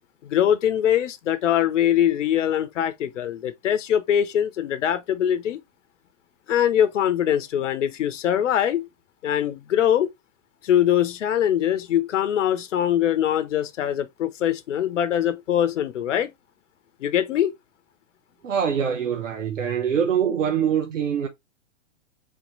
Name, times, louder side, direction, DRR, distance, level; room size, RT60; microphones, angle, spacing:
voice 1, 0.2-5.6 6.5-8.9 9.2-10.1 10.6-16.3 17.0-17.5, left 10 dB, 75° left, 0.9 m, -22 dB
voice 2, 18.4-21.3, right 8 dB, 85° right, 1.1 m, -24 dB
4.1 x 3.0 x 4.0 m
hypercardioid pair, 125°, 37 cm